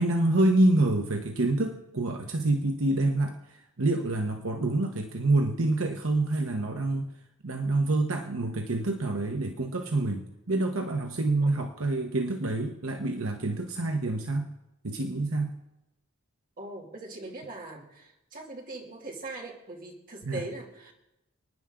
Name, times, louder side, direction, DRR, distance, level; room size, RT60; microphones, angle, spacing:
voice 1, 0.0-3.3 3.8-7.1 7.4-14.5 14.8-15.5 20.3-20.4, right 2 dB, 80° right, 3 dB, 1.1 m, -27 dB
voice 2, 16.6-20.9, right 2 dB, 45° right, -1 dB, 2.7 m, -41 dB
29.5 x 9.9 x 3.8 m, 0.92 s
head